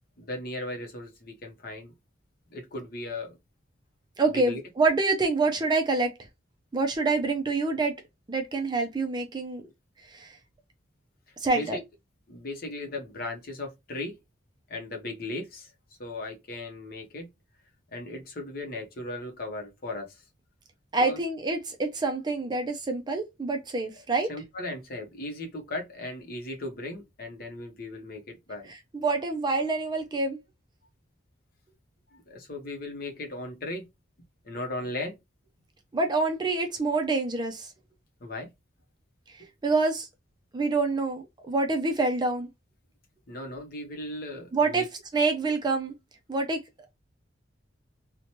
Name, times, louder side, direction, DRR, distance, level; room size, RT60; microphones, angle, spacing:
voice 1, 0.2-1.9 2.5-3.4 4.3-4.6 11.5-11.8 12.3-14.2 14.7-15.7 16.0-17.3 17.9-20.2 21.0-21.2 24.3-28.7 32.1-33.9 34.4-35.2 38.2-38.5 39.4-39.5 43.3-44.9, left 2 dB, 50° left, 0.7 m, -37 dB
voice 2, 4.2-6.1 6.7-7.9 8.3-9.6 10.1-10.4 11.4-11.8 20.9-24.3 28.9-30.4 35.9-37.7 39.3-40.1 40.5-42.5 44.5-44.8 45.1-45.9 46.3-46.6, right 3 dB, 20° right, 0.4 m, -26 dB
2.9 x 2.1 x 2.8 m
head